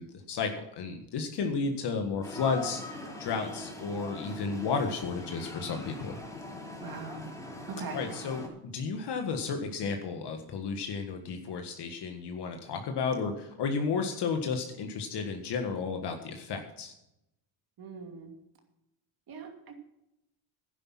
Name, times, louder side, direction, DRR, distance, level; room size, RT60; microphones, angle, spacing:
voice 1, 0.0-2.8 3.2-6.2 7.9-16.9, left 5 dB, 60° left, 4 dB, 1.7 m, -33 dB
sound 1, 2.2-8.5, left 2 dB, 5° left, 4.2 m, -42 dB
voice 2, 6.8-7.3 7.7-8.0 17.8-18.3 19.3-19.8, right 4 dB, 50° right, 4 dB, 2.7 m, -41 dB
11.5 x 10.0 x 6.0 m, 0.84 s
cardioid pair, 115°, 47 cm